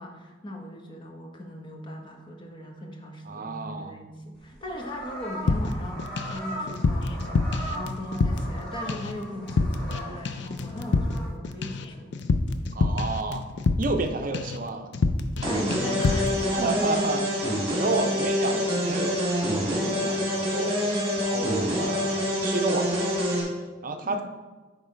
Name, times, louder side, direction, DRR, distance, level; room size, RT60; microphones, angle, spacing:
voice 1, 0.0-12.2 15.4-16.9 24.0-24.2, equal, 25° left, 1 dB, 1.0 m, -39 dB
voice 2, 3.3-3.9 12.7-13.5 13.8-14.9 16.5-17.5 17.8-23.5 23.8-24.2, right 3 dB, 45° right, 6 dB, 0.6 m, -31 dB
sound 1, 4.3-11.3, equal, 5° left, 1.9 m, -39 dB
sound 2, 5.5-6.4 6.7-8.6 8.9-9.2 9.5-10.0 10.2-14.1 14.3-14.6 14.9-15.4 15.7-16.3, left 3 dB, 60° left, 0.5 m, -26 dB
sound 3, 15.4-23.4, left 1 dB, 30° right, 1.9 m, -26 dB
8.3 x 3.3 x 5.0 m, 1.3 s
head